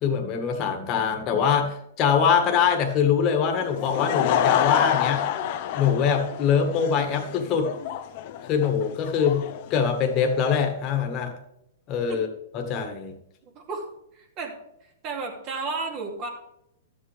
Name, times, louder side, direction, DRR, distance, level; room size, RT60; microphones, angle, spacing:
voice 1, 0.0-5.2 5.7-7.7 8.5-9.4 9.7-11.3 11.9-12.3 12.5-13.2, left 7 dB, 35° left, 5 dB, 1.8 m, -23 dB
Laughter / Crowd, 3.6-10.5, left 10 dB, 50° left, 0.8 m, -28 dB
voice 2, 14.1-14.5 15.0-16.3, right 4 dB, 40° right, 1 dB, 2.5 m, -32 dB
12.5 x 7.9 x 3.5 m, 0.79 s
hypercardioid pair, 130°, 0 cm